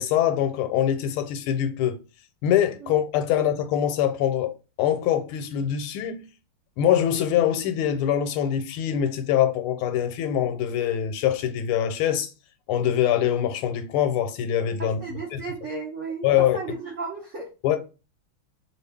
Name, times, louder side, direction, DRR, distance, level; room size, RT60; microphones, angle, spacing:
voice 1, 0.0-2.0 2.4-4.5 4.8-6.3 6.8-12.3 12.7-15.0 15.3-15.4 16.2-16.6 17.6-17.8, left 10 dB, 90° left, 1.5 m, -23 dB
voice 2, 14.8-16.3 16.5-17.4, right 4 dB, 75° right, 0.7 m, -34 dB
3.2 x 2.4 x 3.3 m
omnidirectional pair, 2.3 m